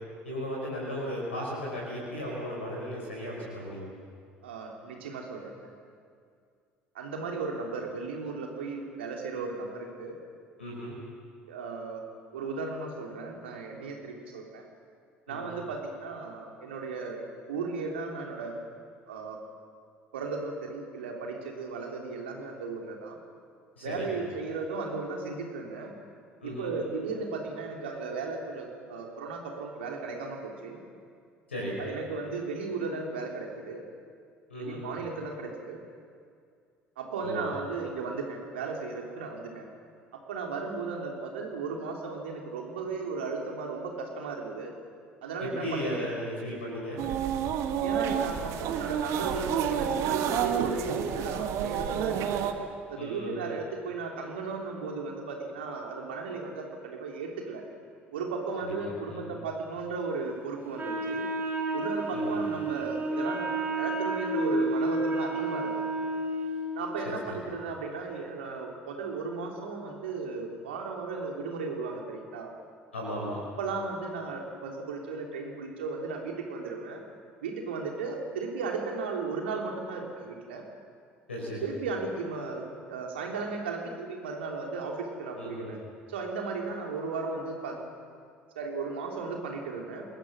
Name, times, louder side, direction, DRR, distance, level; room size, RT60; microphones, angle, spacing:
voice 1, 0.2-3.9 10.6-10.9 15.3-15.5 23.8-24.1 26.4-26.7 31.5-31.8 34.5-34.8 37.2-37.4 45.4-47.0 53.0-53.4 58.6-58.7 59.1-59.3 62.1-62.4 67.0-67.4 72.9-73.4 81.3-81.6 85.4-85.7, equal, 80° left, -4 dB, 5.2 m, -35 dB
voice 2, 4.4-5.7 6.9-10.2 11.5-12.0 12.3-14.6 15.3-17.2 17.5-18.5 19.1-19.4 20.1-23.2 23.8-25.9 26.4-30.8 31.8-33.8 34.6-35.8 37.0-39.6 40.1-44.7 45.2-46.1 47.8-52.5 52.9-57.6 58.1-61.2 61.7-63.5 63.7-65.8 66.7-72.5 73.6-77.0 77.4-80.6 81.6-85.8 86.1-87.8 88.5-90.0, right 4 dB, 70° right, 1 dB, 3.4 m, -35 dB
sound 1, 47.0-52.5, right 8 dB, 50° right, 1.6 m, -29 dB
Wind instrument woodwind instrument, 60.8-66.6, right 2 dB, 30° right, 5.3 m, -30 dB
28.5 x 21.0 x 6.3 m, 2.2 s
figure-of-eight pair, 60°, 6 cm